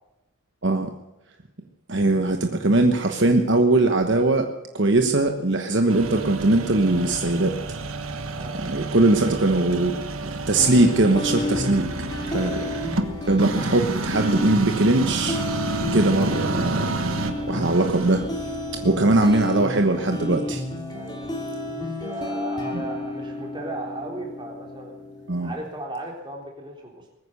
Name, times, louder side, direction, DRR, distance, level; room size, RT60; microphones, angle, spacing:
voice 1, 1.9-4.5 4.7-7.5 8.6-10.0 10.2-11.9 12.3-12.5 13.3-15.4 15.9-16.9 17.5-18.3 18.8-20.6 25.3-25.5, right 2 dB, 55° right, 5 dB, 1.2 m, -20 dB
sound 1, 5.9-19.5, right 3 dB, 80° right, 1.4 m, -30 dB
sound 2, 10.6-25.6, left 2 dB, 20° left, 2.8 m, -31 dB
voice 2, 21.8-24.9 25.4-27.2, right 1 dB, 20° right, 0 dB, 3.7 m, -36 dB
21.5 x 9.7 x 6.7 m, 0.97 s
head